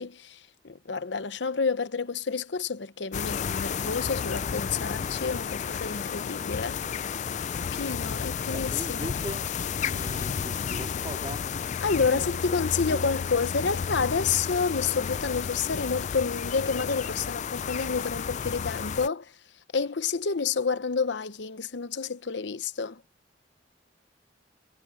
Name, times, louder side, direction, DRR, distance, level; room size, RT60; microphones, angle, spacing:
voice 1, 0.0-6.8 7.6-9.2 11.8-19.3 19.7-23.0, left 5 dB, 75° left, 0.8 m, -29 dB
sound 1, 3.1-19.1, left 7 dB, 40° left, 0.4 m, -32 dB
voice 2, 8.1-9.4 9.8-11.4 12.1-12.3 12.6-13.2, right 1 dB, 30° right, 2.5 m, -40 dB
head